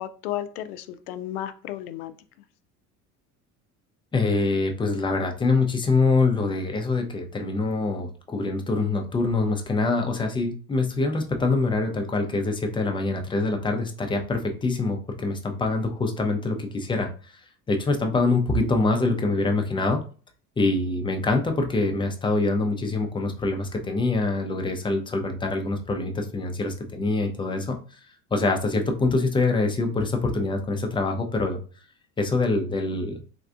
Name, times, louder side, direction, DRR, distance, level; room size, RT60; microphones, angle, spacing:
voice 1, 0.0-2.1, left 12 dB, 70° left, 11 dB, 0.5 m, -33 dB
voice 2, 4.1-17.1 17.7-20.0 20.6-27.8 28.3-31.6 32.2-33.2, left 3 dB, 10° left, 3 dB, 0.4 m, -25 dB
3.5 x 2.3 x 2.5 m, 0.39 s
figure-of-eight pair, 65°, 47 cm